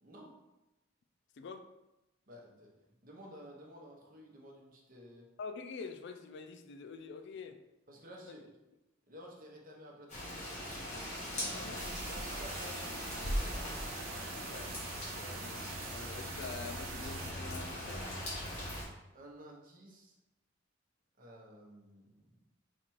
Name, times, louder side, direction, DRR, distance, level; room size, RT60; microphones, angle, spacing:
voice 1, 0.0-0.4 2.3-2.7 3.0-5.3 7.9-8.6 9.1-10.6 11.3-11.7 12.1-14.1 19.1-20.1 21.2-22.6, equal, 45° right, -1 dB, 0.9 m, -53 dB
voice 2, 1.4-1.7 5.4-7.6 11.5-12.2 14.5-18.1, left 4 dB, 60° left, 8 dB, 0.4 m, -46 dB
Rain, 10.1-18.8, left 1 dB, 35° left, 1.5 m, -40 dB
sound 1, 11.7-17.3, right 10 dB, 90° right, 0.4 m, -48 dB
4.3 x 2.5 x 4.5 m, 0.96 s
head